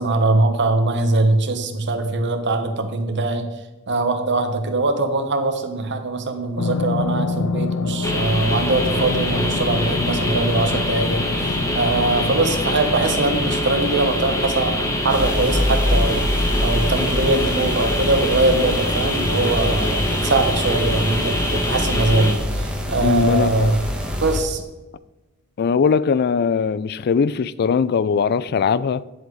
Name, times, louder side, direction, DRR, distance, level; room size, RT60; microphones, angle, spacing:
voice 1, 0.0-3.5 3.9-23.8 24.2-24.6, right 2 dB, 55° right, 1.2 m, -22 dB
sound 1, 6.6-19.5 20.0-20.1, left 3 dB, 75° left, 0.7 m, -30 dB
sound 2, 8.0-22.3, left 1 dB, 15° left, 1.3 m, -24 dB
sound 3, 15.1-24.4, equal, 5° right, 1.3 m, -25 dB
voice 2, 23.0-23.7 25.6-29.0, left 6 dB, 45° left, 0.3 m, -20 dB
10.0 x 7.9 x 3.9 m
head